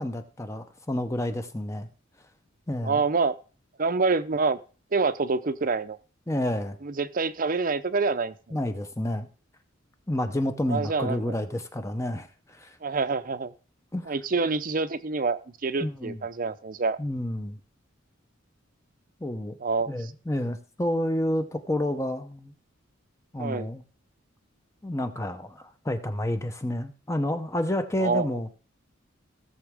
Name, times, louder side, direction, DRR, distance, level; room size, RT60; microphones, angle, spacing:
voice 1, 0.0-1.9 2.7-3.0 6.3-6.8 8.5-9.3 10.1-12.8 13.9-14.1 15.8-16.2 17.0-17.6 19.2-19.6 19.9-22.5 23.3-23.8 24.8-28.5, left 1 dB, 15° left, 7 dB, 0.7 m, -29 dB
voice 2, 2.8-3.4 3.8-4.6 4.9-6.0 6.8-8.6 10.7-11.4 12.8-13.5 14.1-17.0 19.6-20.1 23.4-23.7 28.0-28.3, right 4 dB, 45° right, 13 dB, 0.6 m, -27 dB
16.5 x 7.1 x 3.6 m, 0.37 s
head